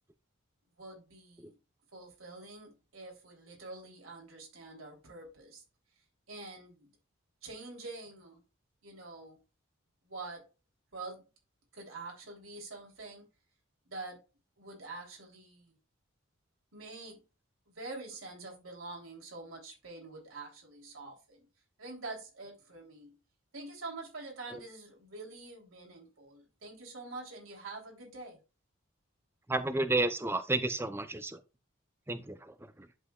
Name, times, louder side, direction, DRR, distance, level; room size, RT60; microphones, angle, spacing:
voice 1, 0.8-1.6 1.9-5.6 6.3-6.9 7.4-8.4 8.8-9.4 10.0-10.4 10.9-11.2 11.7-13.3 13.8-14.2 14.6-15.8 16.7-17.2 17.7-21.5 21.8-23.2 23.5-28.4, right 3 dB, 85° right, 3.2 m, -46 dB
voice 2, 29.5-31.4 32.1-32.4, right 2 dB, 10° right, 0.6 m, -31 dB
11.0 x 5.0 x 2.3 m
head